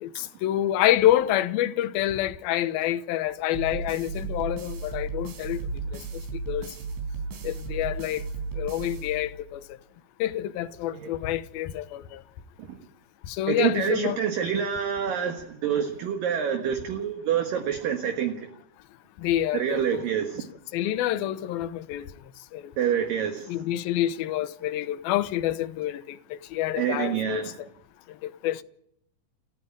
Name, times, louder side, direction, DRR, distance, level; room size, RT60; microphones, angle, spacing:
voice 1, 0.0-5.6 5.9-6.0 6.5-6.7 7.4-8.2 8.6-9.6 10.2-12.2 13.3-14.2 19.2-20.1 20.7-22.1 22.5-22.7 23.5-27.7 28.2-28.6, left 13 dB, 75° left, 2.4 m, -27 dB
sound 1, 3.5-9.7, right 4 dB, 85° right, 6.2 m, -35 dB
voice 2, 13.5-18.5 19.5-20.5 22.8-23.6 26.8-27.5, right 8 dB, 60° right, 2.9 m, -27 dB
29.0 x 10.5 x 8.9 m
omnidirectional pair, 5.1 m